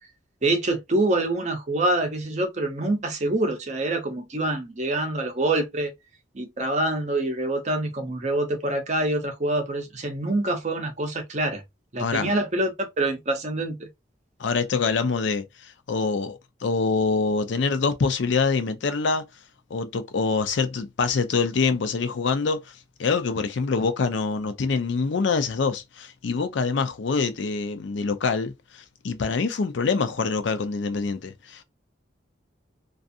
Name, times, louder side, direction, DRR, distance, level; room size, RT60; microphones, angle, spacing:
voice 1, 0.4-5.9 6.3-11.6 11.9-13.9, right 2 dB, 35° right, 0.6 m, -26 dB
voice 2, 12.0-12.3 14.4-19.2 19.7-31.6, left 4 dB, 70° left, 0.5 m, -25 dB
2.5 x 2.3 x 2.5 m
head